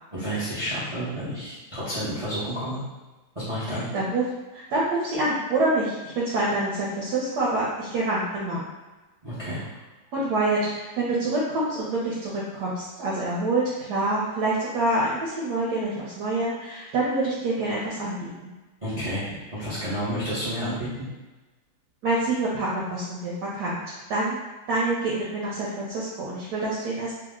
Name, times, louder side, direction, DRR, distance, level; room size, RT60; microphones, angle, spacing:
voice 1, 0.1-2.8 3.3-3.9 9.2-9.6 18.8-21.1, equal, 40° right, -10 dB, 0.4 m, -30 dB
voice 2, 3.7-4.2 4.5-8.7 10.1-18.5 22.0-24.4 24.7-27.1, right 2 dB, 70° right, -6 dB, 1.2 m, -26 dB
3.1 x 2.0 x 3.6 m, 1.2 s
omnidirectional pair, 2.1 m